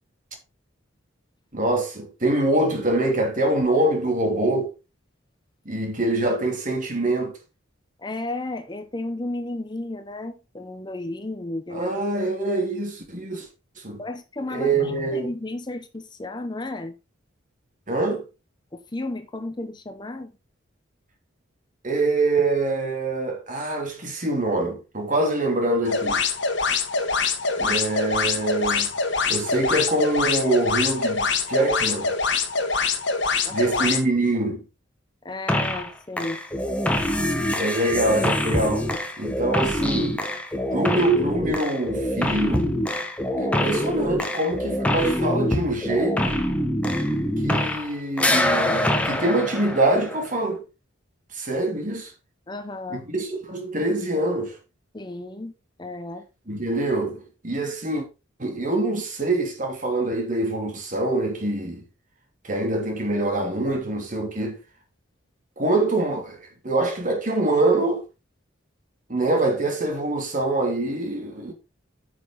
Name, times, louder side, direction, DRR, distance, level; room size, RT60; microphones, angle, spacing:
voice 1, 1.5-4.7 5.6-7.4 11.7-13.5 13.8-14.0 14.5-15.3 17.9-18.3 21.8-26.2 27.6-28.9 29.3-32.1 33.5-34.6 37.6-40.2 40.7-42.7 43.4-46.4 47.4-50.6 51.3-52.1 52.9-54.6 56.5-58.1 58.4-61.8 62.4-64.6 65.6-68.0 69.1-71.5, right 2 dB, 40° right, 2.8 m, -24 dB
voice 2, 8.0-11.9 14.0-16.9 18.7-20.3 27.6-27.8 33.4-33.9 35.2-36.4 52.5-53.0 54.9-55.5 55.8-56.3, left 2 dB, 20° left, 0.7 m, -33 dB
sound 1, 25.9-34.0, left 4 dB, 60° left, 1.6 m, -24 dB
sound 2, 35.5-35.9 36.2-47.9 48.2-50.4, left 1 dB, 5° left, 1.2 m, -25 dB
9.7 x 6.1 x 4.0 m
head